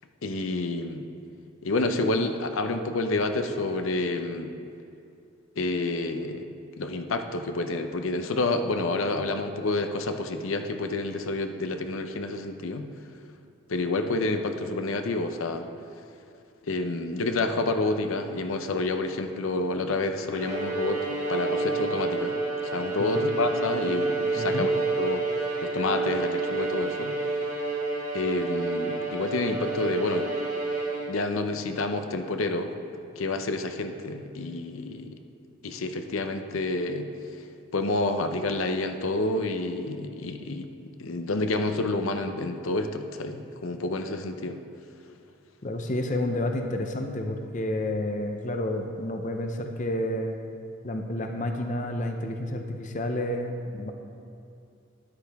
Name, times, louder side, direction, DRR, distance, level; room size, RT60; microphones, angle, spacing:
voice 1, 0.2-1.0 1.6-4.5 5.6-6.5 6.8-12.9 13.7-15.7 16.7-21.0 21.3-22.4 22.6-25.2 25.6-27.1 28.1-30.3 31.1-32.7 33.2-35.2 35.6-37.1 37.7-40.7 41.0-44.6, left 2 dB, 75° left, 7 dB, 0.7 m, -29 dB
Bowed string instrument, 20.3-31.4, right 3 dB, 35° right, 2.0 m, -29 dB
voice 2, 24.3-24.7 45.6-50.3 50.8-53.9, left 1 dB, 35° left, 4 dB, 0.6 m, -30 dB
13.0 x 10.0 x 3.5 m, 2.5 s
head